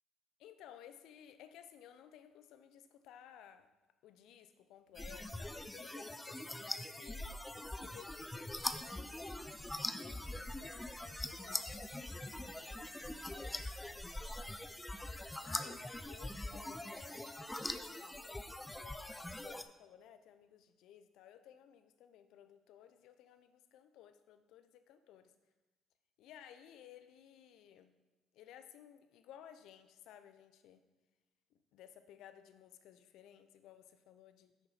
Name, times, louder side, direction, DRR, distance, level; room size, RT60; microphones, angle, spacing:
voice 1, 0.4-3.7 4.0-5.5 5.7-7.4 7.8-14.7 15.4-17.3 17.6-25.3 26.2-27.9 28.3-30.8 31.5-34.7, left 10 dB, 75° left, 10 dB, 0.5 m, -58 dB
sound 1, 4.9-19.6, left 1 dB, 10° left, 0.5 m, -43 dB
sound 2, 9.3-18.3 18.6-18.7 19.2-19.3, right 4 dB, 75° right, 2.6 m, -66 dB
10.5 x 4.0 x 4.1 m, 1.1 s
supercardioid pair, 70°, 0 cm